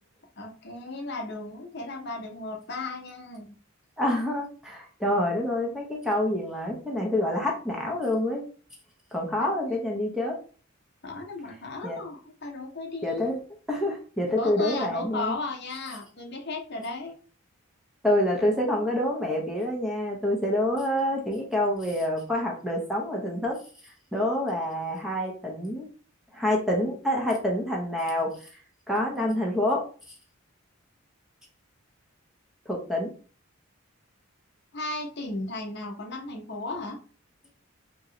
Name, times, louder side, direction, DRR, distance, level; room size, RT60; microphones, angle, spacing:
voice 1, 0.4-3.5 9.4-9.5 11.0-13.3 14.3-17.1 34.7-37.0, left 2 dB, 50° left, 1 dB, 0.8 m, -35 dB
voice 2, 4.0-8.4 9.1-10.4 11.8-12.0 13.0-13.4 13.7-15.4 18.0-23.6 23.8-25.9 26.3-28.5 28.9-29.8 32.7-33.1, left 1 dB, ahead, -1 dB, 0.8 m, -27 dB
3.0 x 2.8 x 3.8 m, 0.39 s
head